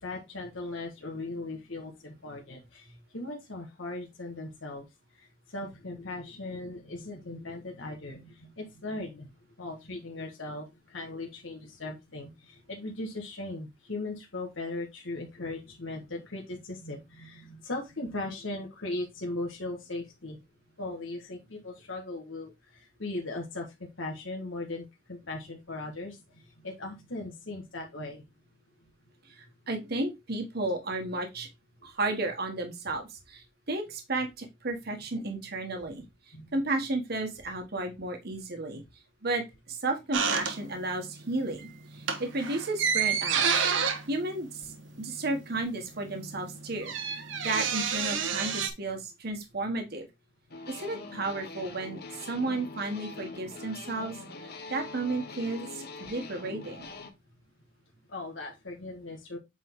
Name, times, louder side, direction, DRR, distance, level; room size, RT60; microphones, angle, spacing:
voice 1, 0.0-4.8 5.5-9.3 9.6-20.4 20.8-23.7 24.0-26.2 26.6-28.2 36.3-36.6 45.1-45.2 45.5-45.6 58.1-59.4, left 2 dB, 85° left, 0 dB, 1.6 m, -38 dB
voice 2, 29.3-31.5 31.8-36.0 36.5-38.8 39.2-43.6 44.1-44.7 45.0-50.1 50.7-56.9, right 2 dB, 55° right, 4 dB, 1.4 m, -33 dB
sound 1, 40.1-41.1 41.4-41.6 41.9-45.4 45.7-45.8 46.0-48.7, right 6 dB, 75° right, 1.3 m, -29 dB
sound 2, 50.5-57.1, left 3 dB, 55° left, 1.1 m, -43 dB
8.3 x 3.9 x 3.7 m, 0.22 s
head